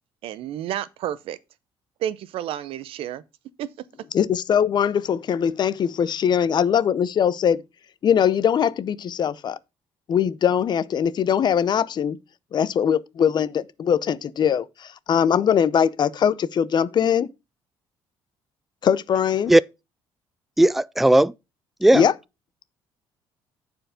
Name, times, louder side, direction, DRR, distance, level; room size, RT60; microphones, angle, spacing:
voice 1, 0.2-1.4 2.0-3.2 3.6-3.7, right 11 dB, 75° right, 0.6 m, -30 dB
voice 2, 4.1-7.6 8.0-9.6 10.1-12.2 12.5-17.3 18.8-19.5 21.9-22.1, left 8 dB, 50° left, 0.6 m, -21 dB
voice 3, 20.6-21.3 21.8-22.0, right 1 dB, ahead, 0.3 m, -16 dB
7.7 x 4.6 x 5.0 m
supercardioid pair, 80°, 10 cm